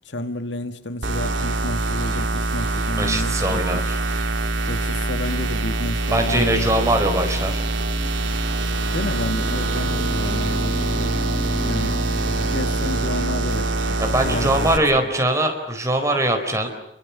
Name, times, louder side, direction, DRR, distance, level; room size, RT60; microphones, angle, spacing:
voice 1, 0.1-3.8 4.7-6.7 8.9-11.2 11.6-12.1 12.5-14.7, left 1 dB, 80° left, 8 dB, 1.8 m, -30 dB
sound 1, 1.0-14.8, right 2 dB, 85° right, 2.8 m, -24 dB
voice 2, 3.0-4.0 6.1-7.6 14.0-16.7, right 1 dB, 15° right, 4 dB, 4.5 m, -21 dB
sound 2, 4.6-14.9, left 1 dB, 25° left, 1.8 m, -38 dB
28.5 x 22.5 x 7.2 m, 0.84 s
head